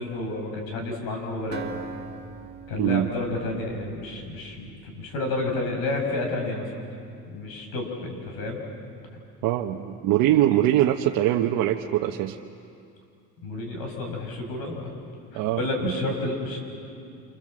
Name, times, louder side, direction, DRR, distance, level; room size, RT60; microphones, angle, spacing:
voice 1, 0.0-1.6 2.7-6.7 7.3-8.6 13.4-14.9 15.3-16.6, left 2 dB, 75° left, 2 dB, 6.5 m, -30 dB
Acoustic guitar, 1.5-5.4, right 5 dB, 30° right, 1.8 m, -42 dB
voice 2, 2.8-3.1 9.4-12.4 15.3-15.9, right 13 dB, 70° right, 1 dB, 1.2 m, -23 dB
28.5 x 27.0 x 7.7 m, 2.5 s
cardioid pair, 160°, 36 cm